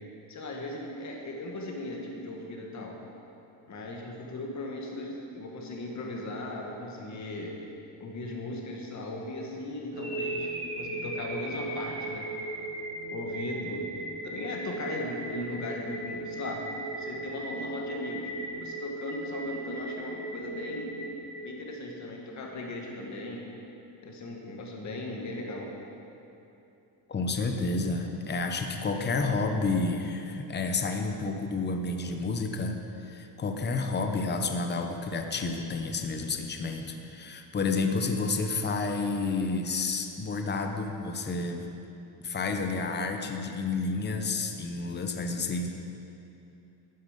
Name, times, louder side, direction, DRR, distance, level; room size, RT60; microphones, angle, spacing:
voice 1, 0.3-3.0 3.7-7.5 8.0-12.3 13.1-13.9 14.2-16.6 17.0-18.3 18.6-20.9 21.4-23.5 24.0-25.7, left 2 dB, 40° left, 0 dB, 2.0 m, -37 dB
sound 1, 9.9-22.0, right 2 dB, 10° right, 2.2 m, -37 dB
voice 2, 27.1-41.7 42.2-45.7, left 3 dB, 25° left, 5 dB, 0.9 m, -30 dB
12.0 x 9.5 x 5.3 m, 2.8 s
cardioid pair, 135°, 43 cm